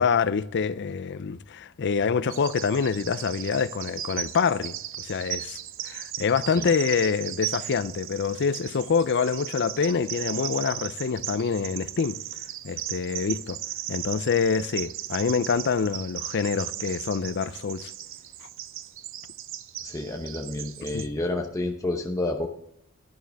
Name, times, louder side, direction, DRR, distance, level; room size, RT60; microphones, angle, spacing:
voice 1, 0.0-4.8 5.0-5.6 5.8-12.2 12.6-13.6 13.9-17.9 20.9-21.1, left 5 dB, 55° left, 0.5 m, -26 dB
Bird vocalization bird call bird song, 2.3-21.1, right 12 dB, 65° right, 0.6 m, -37 dB
voice 2, 19.8-22.5, left 2 dB, 15° left, 0.8 m, -29 dB
11.5 x 11.0 x 3.5 m
head